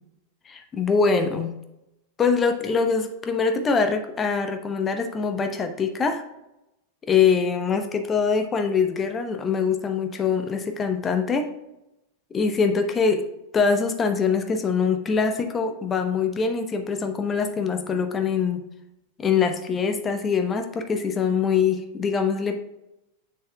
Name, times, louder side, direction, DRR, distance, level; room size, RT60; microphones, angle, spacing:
voice 1, 0.5-1.5 2.2-6.2 7.1-11.5 12.3-13.3 13.5-18.6 19.2-22.6, left 5 dB, 20° left, 7 dB, 0.8 m, -23 dB
7.2 x 6.5 x 2.2 m, 0.90 s
figure-of-eight pair, 90°, 0 cm